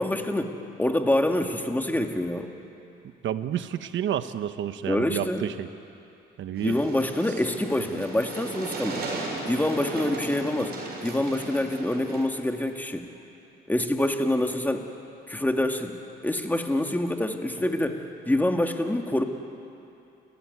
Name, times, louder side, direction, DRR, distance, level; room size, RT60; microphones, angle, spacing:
voice 1, 0.0-2.5 4.9-5.5 6.6-9.1 9.5-13.1 13.7-14.9 15.3-19.2, left 1 dB, 10° left, 4 dB, 2.2 m, -26 dB
voice 2, 3.0-5.7 6.4-6.8, right 10 dB, 70° right, 11 dB, 1.1 m, -30 dB
sound 1, 6.6-12.2, right 2 dB, 55° right, 6.5 m, -36 dB
30.0 x 16.0 x 9.4 m, 2.7 s
cardioid pair, 90°, 20 cm